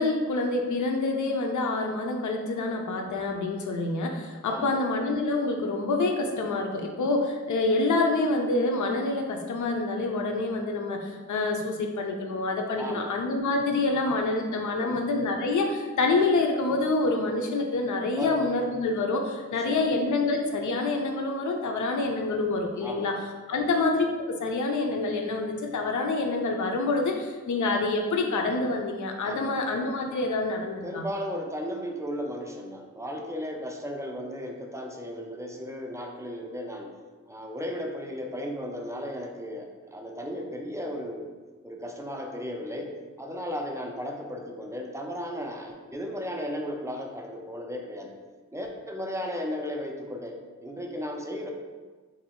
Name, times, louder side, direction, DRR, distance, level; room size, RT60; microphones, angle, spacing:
voice 1, 0.0-23.2 23.5-24.1 24.4-31.1, left 3 dB, 75° left, 2 dB, 0.5 m, -27 dB
voice 2, 12.8-13.1 14.8-15.0 18.1-18.4 19.5-19.8 22.8-23.1 23.5-23.7 29.2-29.5 30.8-36.9 37.3-41.3 41.6-42.9 43.2-48.2 48.5-51.5, equal, 10° right, 1 dB, 0.3 m, -35 dB
2.9 x 2.7 x 4.2 m, 1.4 s
wide cardioid pair, 165°, 30 cm